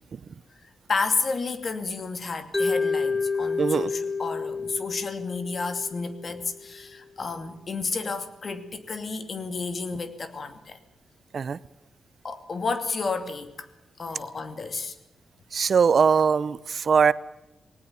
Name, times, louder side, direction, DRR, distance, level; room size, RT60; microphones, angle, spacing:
voice 1, 0.6-10.8 12.2-13.7 14.0-15.0, left 4 dB, 50° left, 9 dB, 2.6 m, -31 dB
Mallet percussion, 2.5-6.6, left 4 dB, 20° left, 0.7 m, -29 dB
voice 2, 3.6-3.9 11.3-11.6 15.5-17.1, right 6 dB, 55° right, 18 dB, 0.7 m, -21 dB
20.5 x 18.5 x 7.1 m, 0.95 s
cardioid pair, 75°, 0 cm